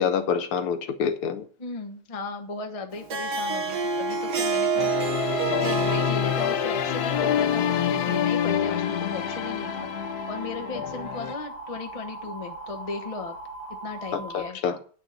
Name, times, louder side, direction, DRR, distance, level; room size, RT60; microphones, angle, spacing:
voice 1, 0.0-1.5 14.1-14.8, left 7 dB, 80° left, 1.9 m, -26 dB
voice 2, 1.6-9.9 10.3-13.4 13.8-14.6, left 3 dB, 20° left, 0.9 m, -36 dB
Harp, 2.9-8.4, right 4 dB, 50° right, 1.8 m, -29 dB
sound 1, 4.8-11.3, left 10 dB, 65° left, 1.0 m, -27 dB
sound 2, 7.1-14.5, right 2 dB, 70° right, 3.5 m, -39 dB
9.3 x 6.3 x 8.1 m
omnidirectional pair, 2.4 m